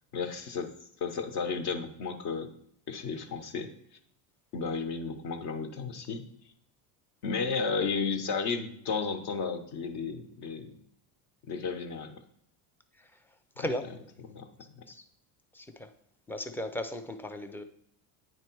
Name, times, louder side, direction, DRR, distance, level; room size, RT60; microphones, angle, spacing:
voice 1, 0.1-0.7 1.0-2.5 2.9-3.7 4.5-6.2 7.2-10.7 11.5-12.1 13.6-13.7 14.3-14.8, left 5 dB, 55° left, 7 dB, 1.1 m, -33 dB
voice 2, 13.6-13.9 14.9-15.0 15.5-15.9 16.3-17.6, left 1 dB, 5° left, 8 dB, 0.3 m, -36 dB
9.2 x 3.2 x 4.5 m, 0.70 s
supercardioid pair, 100°, 46 cm